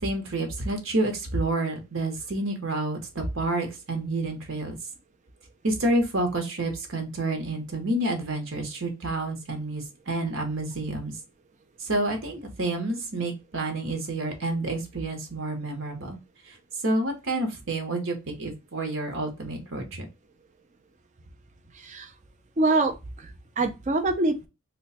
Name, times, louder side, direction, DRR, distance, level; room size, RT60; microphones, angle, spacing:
voice 1, 0.0-4.8 5.6-11.1 11.8-16.2 16.5-16.6 16.8-20.1, right 2 dB, 65° right, 4 dB, 1.0 m, -29 dB
voice 2, 21.8-22.1 22.6-23.3 23.6-24.5, right 2 dB, 35° right, 7 dB, 0.5 m, -25 dB
3.0 x 2.2 x 4.1 m, 0.26 s
head